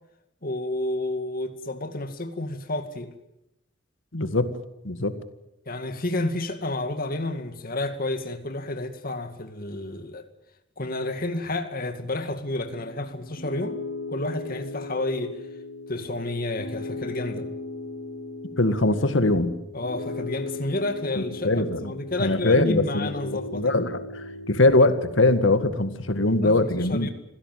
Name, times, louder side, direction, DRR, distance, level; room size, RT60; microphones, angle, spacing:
voice 1, 0.4-3.1 5.7-10.3 10.8-13.8 14.1-15.4 15.9-17.5 19.7-23.7 26.4-27.1, left 2 dB, 50° left, 2.2 m, -30 dB
voice 2, 4.1-4.5 4.8-5.2 18.6-19.5 21.2-21.9 22.2-23.1 23.5-27.1, left 2 dB, 90° left, 1.9 m, -22 dB
Piano, 12.6-25.7, left 2 dB, 70° left, 5.0 m, -37 dB
25.5 x 17.0 x 9.3 m
head